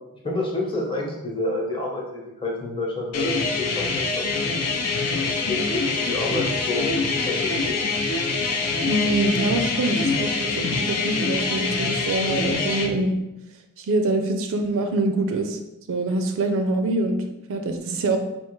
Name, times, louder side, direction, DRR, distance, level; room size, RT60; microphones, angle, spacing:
voice 1, 0.2-4.5 5.1-7.8, left 2 dB, 25° left, -2 dB, 0.9 m, -29 dB
sound 1, 3.1-12.9, left 3 dB, 75° left, 0.6 m, -25 dB
voice 2, 8.9-13.2 13.8-15.6 15.9-17.2 17.5-18.2, right 2 dB, 65° right, 6 dB, 0.4 m, -24 dB
3.6 x 2.4 x 4.5 m, 0.93 s
head